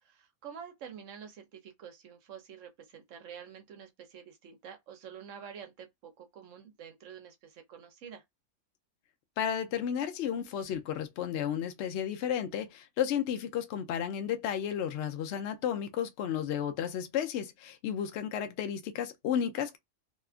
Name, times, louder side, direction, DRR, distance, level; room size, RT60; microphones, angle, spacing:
voice 1, 0.0-8.2, right 7 dB, 65° right, 1.0 m, -48 dB
voice 2, 9.4-19.8, left 9 dB, 65° left, 0.7 m, -33 dB
2.8 x 2.3 x 2.4 m
omnidirectional pair, 1.5 m